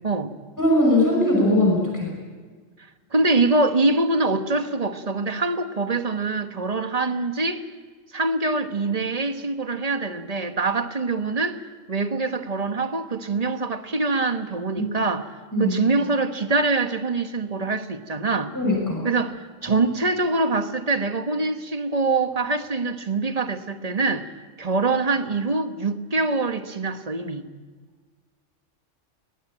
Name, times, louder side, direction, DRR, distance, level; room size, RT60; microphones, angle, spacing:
voice 1, 0.6-2.1 14.8-14.9 15.5-15.8 18.5-19.0, left 1 dB, 15° left, 5.8 m, -20 dB
voice 2, 3.1-7.7 8.1-11.6 11.9-15.3 15.6-18.6 19.0-24.3 24.6-27.4, right 3 dB, 30° right, 1.3 m, -24 dB
22.0 x 19.0 x 8.8 m
omnidirectional pair, 1.3 m